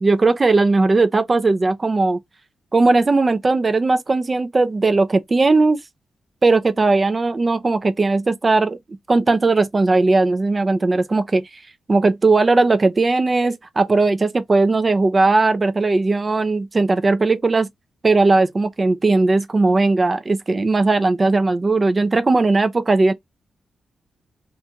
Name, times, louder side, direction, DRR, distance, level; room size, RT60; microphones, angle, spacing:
voice 1, 0.0-2.2 2.7-5.8 6.4-8.8 9.1-11.5 11.9-17.7 18.0-23.1, right 3 dB, 35° right, 0.5 m, -18 dB
2.6 x 2.3 x 2.8 m
cardioid pair, 65°, 0 cm